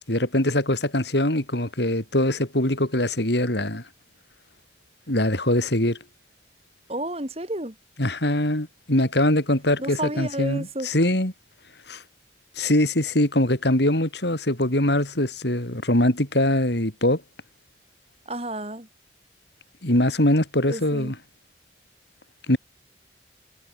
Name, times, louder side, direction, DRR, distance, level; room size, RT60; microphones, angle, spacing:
voice 1, 0.1-3.8 5.1-6.0 8.0-11.3 11.9-12.0 12.6-17.2 19.8-21.2 22.5-22.6, left 1 dB, 70° left, 4.1 m, -22 dB
voice 2, 6.9-7.7 9.8-10.9 18.3-18.9 20.7-21.1, right 1 dB, 35° right, 3.6 m, -31 dB
head